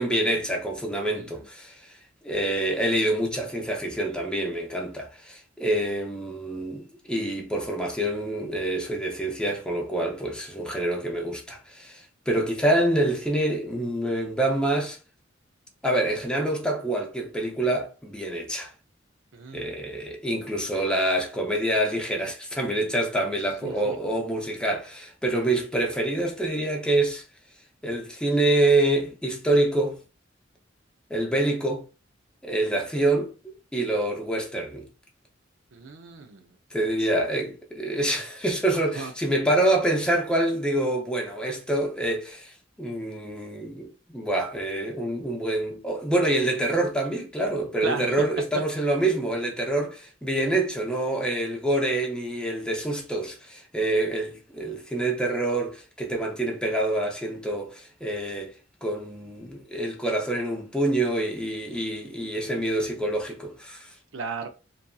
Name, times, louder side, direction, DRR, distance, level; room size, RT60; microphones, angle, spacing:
voice 1, 0.0-1.9 2.2-15.0 15.8-18.7 19.5-27.2 27.8-30.0 31.1-31.8 32.4-34.8 36.7-58.5 58.8-63.9, right 1 dB, 5° left, 0.5 m, -26 dB
voice 2, 19.3-19.7 23.6-24.0 35.7-36.5 38.9-39.1 47.8-48.1 64.1-64.5, right 4 dB, 75° right, 0.5 m, -35 dB
2.7 x 2.5 x 2.2 m
head